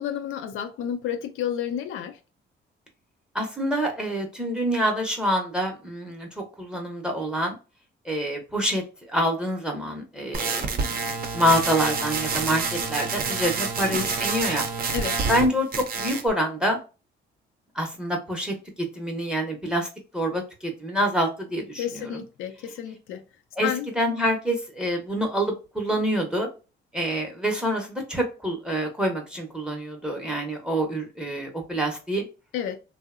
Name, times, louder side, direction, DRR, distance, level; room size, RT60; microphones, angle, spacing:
voice 1, 0.0-2.2 13.8-14.1 14.9-15.2 21.8-23.2 23.6-23.9 32.5-32.8, left 9 dB, 85° left, 0.4 m, -31 dB
voice 2, 3.3-7.6 8.1-14.7 15.3-16.8 17.8-18.5 19.0-19.9 20.1-22.1 23.6-23.7 24.0-26.5 26.9-32.2, equal, 5° right, 0.6 m, -26 dB
sound 1, 10.3-15.5 15.7-16.3, right 4 dB, 45° right, 0.5 m, -28 dB
2.7 x 2.0 x 2.3 m
cardioid pair, 90°, 20 cm